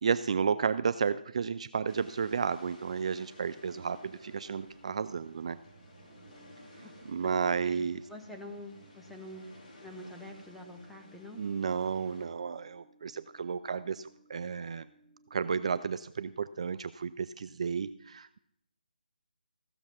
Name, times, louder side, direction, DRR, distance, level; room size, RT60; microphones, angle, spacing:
voice 1, 0.0-5.6 7.1-8.0 11.4-14.9 15.3-18.4, right 6 dB, 40° right, 14 dB, 0.3 m, -32 dB
sound 1, 1.9-12.3, left 2 dB, 40° left, 2.8 m, -56 dB
sound 2, 2.7-11.4, right 3 dB, 65° right, 3.0 m, -60 dB
voice 2, 7.6-9.5 9.8-11.4, left 1 dB, ahead, 1 dB, 0.9 m, -46 dB
sound 3, 10.2-15.7, right 1 dB, 20° left, 5.7 m, -64 dB
15.0 x 6.9 x 5.8 m, 0.76 s
figure-of-eight pair, 150°, 5 cm